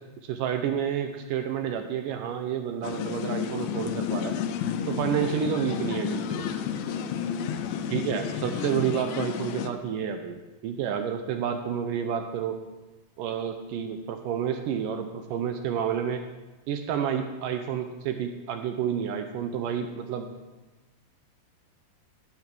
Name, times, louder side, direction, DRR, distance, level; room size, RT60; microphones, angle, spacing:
voice 1, 0.2-4.4 4.9-6.5 7.9-12.6 13.2-16.2 16.7-20.3, right 8 dB, 80° right, 6 dB, 1.9 m, -30 dB
sound 1, 2.8-9.7, left 8 dB, 80° left, 2.4 m, -31 dB
15.5 x 5.8 x 6.0 m, 1.1 s
omnidirectional pair, 4.5 m